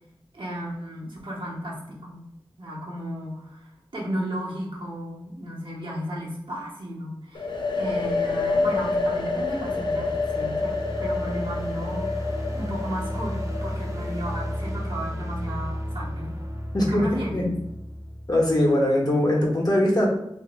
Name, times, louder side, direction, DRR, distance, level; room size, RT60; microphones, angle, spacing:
voice 1, 0.3-2.3 2.6-16.4 16.9-17.5, equal, 70° right, -4 dB, 1.0 m, -34 dB
sound 1, 7.3-15.0, left 3 dB, 65° left, 0.5 m, -28 dB
sound 2, 8.7-18.7, equal, 40° right, 0.6 m, -34 dB
voice 2, 16.7-17.1 17.3-17.5 18.3-20.1, left 1 dB, 50° left, -2 dB, 1.0 m, -21 dB
2.6 x 2.2 x 3.8 m, 0.81 s
wide cardioid pair, 45°, 9 cm